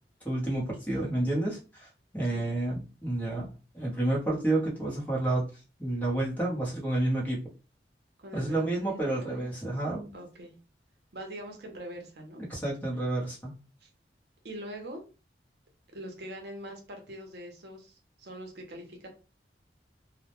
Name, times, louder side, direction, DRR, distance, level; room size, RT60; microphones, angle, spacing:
voice 1, 0.2-1.9 2.1-3.5 3.7-5.4 5.8-7.4 8.3-10.2 12.5-13.5, right 1 dB, 10° left, -4 dB, 0.8 m, -30 dB
voice 2, 8.2-9.4 10.1-10.6 11.1-12.4 13.8-13.9 14.4-15.0 15.9-19.1, right 1 dB, 65° right, 2 dB, 0.6 m, -43 dB
2.1 x 2.1 x 2.9 m, 0.33 s
head